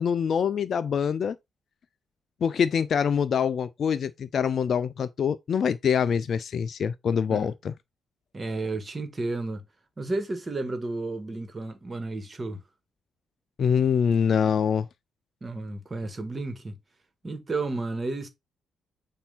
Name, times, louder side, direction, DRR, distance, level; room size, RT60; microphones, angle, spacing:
voice 1, 0.0-1.4 2.4-7.7 13.6-14.9, left 7 dB, 50° left, 0.4 m, -25 dB
voice 2, 8.3-9.7 10.0-12.6 15.4-16.8 17.2-18.3, right 3 dB, 30° right, 1.8 m, -32 dB
6.9 x 2.7 x 5.7 m
figure-of-eight pair, 40°, 0 cm